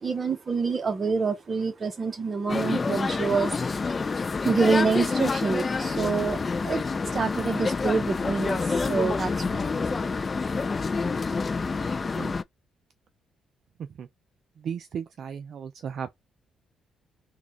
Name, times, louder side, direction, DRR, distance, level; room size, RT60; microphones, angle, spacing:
voice 1, 0.0-3.5 4.4-6.4 6.6-6.8 7.1-9.6, right 4 dB, 35° right, 1.0 m, -26 dB
sound 1, 2.5-12.4, left 4 dB, 30° left, 0.3 m, -28 dB
voice 2, 14.6-16.1, right 7 dB, 60° right, 0.4 m, -35 dB
3.7 x 2.4 x 4.2 m
cardioid pair, 90°, 0 cm